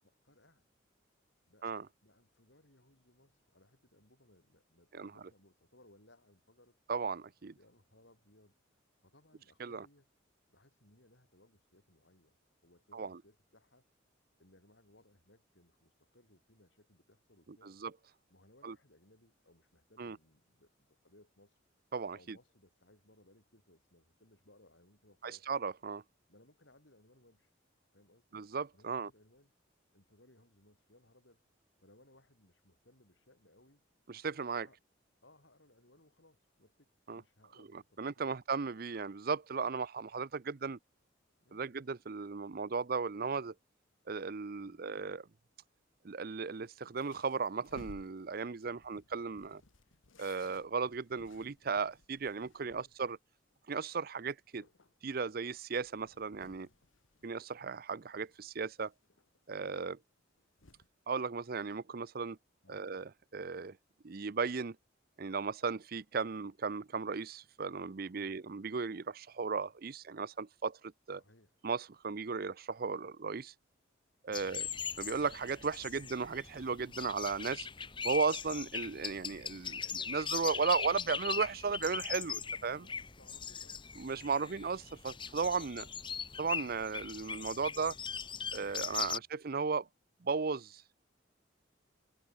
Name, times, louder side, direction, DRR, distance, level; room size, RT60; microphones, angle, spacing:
voice 1, 0.0-0.6 1.5-6.8 7.6-8.6 9.0-10.1 10.5-12.4 12.6-13.9 14.4-17.8 18.3-21.6 22.1-25.5 26.3-27.5 27.9-29.5 29.9-31.4 31.8-33.8 34.6-34.8 35.2-38.4 41.4-41.7 44.6-44.9 48.6-49.0 49.8-50.0 52.6-53.0 62.6-63.0 68.1-68.4 71.2-71.5 74.3-74.6 82.8-84.5 89.0-89.3, left 1 dB, 65° left, 7.9 m, -65 dB
voice 2, 6.9-7.5 9.6-9.9 12.9-13.2 17.6-17.9 18.6-18.7 20.0-20.2 21.9-22.4 25.2-26.0 28.3-29.1 34.1-34.7 37.1-37.2 38.0-40.8 41.5-43.5 44.1-45.3 46.0-49.6 50.2-53.2 53.7-54.6 55.0-56.7 57.2-58.9 59.5-60.0 61.1-62.4 62.7-63.8 64.0-64.8 65.2-71.2 71.6-73.5 74.2-74.7 75.0-77.7 78.0-82.9 84.0-85.8 86.4-88.0 88.5-89.9 90.2-90.8, right 5 dB, 50° right, 0.6 m, -36 dB
sound 1, 46.5-53.2 53.5-53.6 53.9-54.0 54.4-58.0 58.2-59.4 60.2-60.9, left 2 dB, 85° left, 1.6 m, -60 dB
sound 2, 74.3-89.2, left 6 dB, 25° left, 1.3 m, -40 dB
head